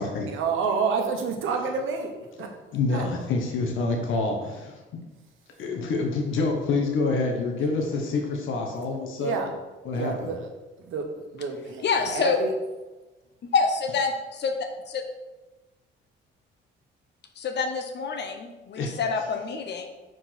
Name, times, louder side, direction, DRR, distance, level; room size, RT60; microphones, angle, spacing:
voice 1, 0.3-3.0 9.2-9.5 9.9-10.5 10.8-11.1 11.3-12.5, right 5 dB, 85° right, 3 dB, 1.2 m, -29 dB
voice 2, 2.7-5.0 5.6-9.3 9.8-10.3 18.7-19.0, left 3 dB, 80° left, 2 dB, 1.3 m, -27 dB
voice 3, 11.8-12.4 13.5-14.5 14.9-15.0 17.4-19.9, left 5 dB, 60° left, 5 dB, 1.1 m, -27 dB
5.2 x 4.6 x 5.8 m, 1.1 s
cardioid pair, 90°, 20 cm